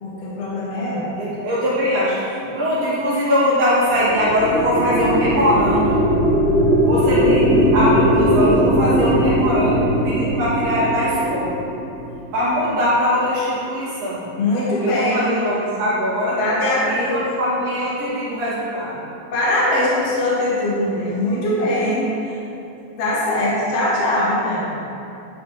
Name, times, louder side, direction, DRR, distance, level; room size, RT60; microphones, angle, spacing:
voice 1, 0.0-1.1 14.4-15.3 16.4-17.3 19.3-22.4 23.0-24.8, left 1 dB, 60° left, -7 dB, 1.9 m, -21 dB
voice 2, 1.2-6.1 6.8-11.6 12.3-14.3 14.8-16.4 16.9-19.0, equal, 75° right, -9 dB, 3.1 m, -21 dB
sound 1, 3.9-12.4, equal, 85° left, 3.5 m, -19 dB
11.0 x 5.0 x 3.3 m, 2.7 s
omnidirectional pair, 4.1 m